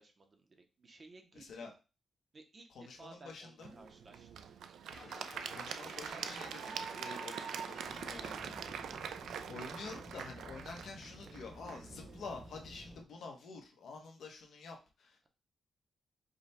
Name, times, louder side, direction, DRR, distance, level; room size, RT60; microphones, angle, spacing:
voice 1, 0.0-1.7 2.3-4.3, right 3 dB, 30° right, 5 dB, 0.6 m, -58 dB
voice 2, 1.3-1.7 2.7-3.8 5.5-8.7 9.5-15.3, left 4 dB, 70° left, 2 dB, 0.9 m, -48 dB
Applause / Crowd, 3.6-12.7, right 7 dB, 80° right, 0.3 m, -44 dB
sound 1, 4.9-8.7, left 3 dB, 40° left, 1.7 m, -53 dB
sound 2, 7.8-13.0, equal, 10° left, 0.5 m, -53 dB
5.0 x 2.2 x 4.1 m, 0.33 s
wide cardioid pair, 165°, 0 cm